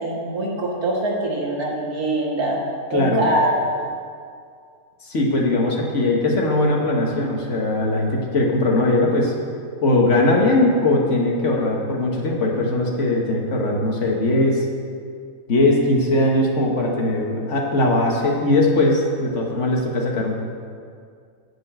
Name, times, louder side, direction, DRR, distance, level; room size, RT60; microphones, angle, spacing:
voice 1, 0.0-2.6 2.9-3.5 3.8-3.9, right 1 dB, 75° right, -2 dB, 2.1 m, -23 dB
voice 2, 2.9-3.3 5.0-9.3 9.8-14.7 15.5-20.4, left 2 dB, 50° left, 0 dB, 1.6 m, -20 dB
10.5 x 5.3 x 7.8 m, 2.2 s
omnidirectional pair, 1.6 m